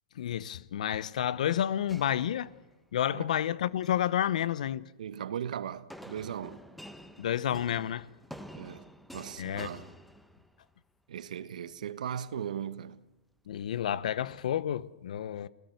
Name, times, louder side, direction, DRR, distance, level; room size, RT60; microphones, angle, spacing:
voice 1, 0.2-2.5 2.9-4.9 7.2-8.1 9.4-9.7 13.5-15.5, left 10 dB, 75° left, 0.9 m, -30 dB
sound 1, 1.9-3.0 3.6-4.1 5.9-10.7, equal, ahead, 1.1 m, -49 dB
voice 2, 5.0-6.6 8.6-9.9 11.1-13.0, right 9 dB, 80° right, 1.2 m, -38 dB
28.5 x 17.0 x 8.0 m
hypercardioid pair, 145°, 4 cm